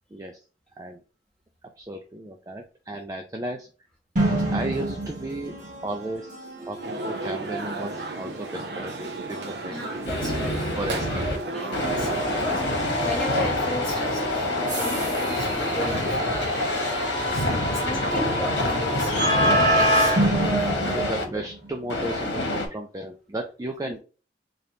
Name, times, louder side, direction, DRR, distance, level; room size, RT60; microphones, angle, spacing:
voice 1, 1.8-3.7 4.5-5.5 5.8-6.3 6.7-9.7 10.8-11.3 20.9-24.0, right 1 dB, 20° right, 0.4 m, -34 dB
sound 1, 4.2-21.9, right 1 dB, 50° right, 1.7 m, -29 dB
sound 2, 6.8-12.9, right 2 dB, 70° right, 0.7 m, -34 dB
voice 2, 9.7-21.1, equal, 5° left, 1.5 m, -35 dB
sound 3, 10.0-11.4 11.7-21.2 21.9-22.7, left 1 dB, 85° left, 1.2 m, -26 dB
3.9 x 3.4 x 2.8 m
head